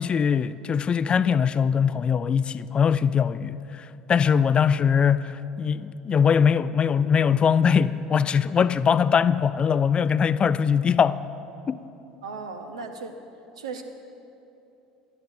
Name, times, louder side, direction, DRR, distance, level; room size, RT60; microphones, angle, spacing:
voice 1, 0.0-11.2 11.7-11.8, left 7 dB, 30° left, 0.4 m, -22 dB
voice 2, 12.2-13.1 13.6-13.8, right 4 dB, 75° right, 0.7 m, -36 dB
19.0 x 12.5 x 2.7 m
figure-of-eight pair, 65°, 3 cm